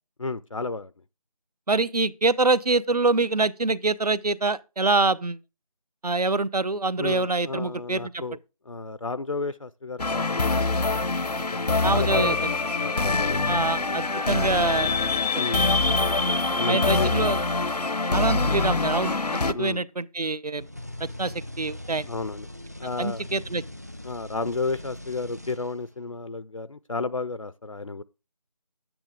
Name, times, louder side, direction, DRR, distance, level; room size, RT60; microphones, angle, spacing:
voice 1, 0.2-0.9 7.0-8.4 8.7-10.8 11.4-12.4 12.8-14.2 15.3-15.7 16.6-17.2 18.1-18.3 19.5-19.9 22.1-22.5 22.8-23.2 24.0-28.0, left 3 dB, 55° left, 0.5 m, -32 dB
voice 2, 1.7-5.4 6.0-8.0 11.8-12.4 13.5-14.9 16.7-17.4 18.1-20.7 21.0-22.1 23.0-23.6, right 3 dB, 75° right, 0.8 m, -25 dB
sound 1, 10.0-19.5, left 3 dB, 85° left, 0.9 m, -24 dB
sound 2, 20.6-26.0, left 1 dB, 25° right, 0.5 m, -41 dB
10.0 x 9.0 x 3.6 m
figure-of-eight pair, 170°, 20 cm